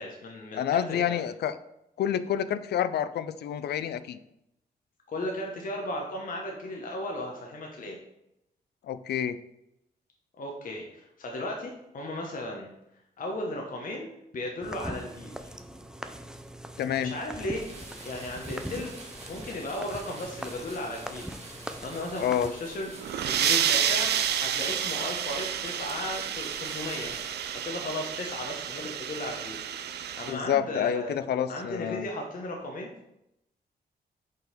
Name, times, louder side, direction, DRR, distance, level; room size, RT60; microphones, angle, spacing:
voice 1, 0.0-1.2 5.1-8.0 10.4-12.7 13.2-15.5 17.0-17.6 18.0-18.9 19.3-27.2 27.6-31.2 31.5-32.9, left 1 dB, 55° left, 1 dB, 1.1 m, -36 dB
voice 2, 0.5-1.6 2.0-4.2 8.9-9.4 16.8-17.1 22.2-22.5 30.3-32.0, left 9 dB, 80° left, 13 dB, 0.4 m, -28 dB
sound 1, 14.6-22.5, right 1 dB, 5° right, 0.5 m, -41 dB
sound 2, 17.4-27.9, right 2 dB, 40° right, 1.5 m, -47 dB
sound 3, 22.9-30.3, right 9 dB, 80° right, 0.5 m, -30 dB
5.5 x 3.9 x 5.1 m, 0.83 s
cardioid pair, 85°, 17 cm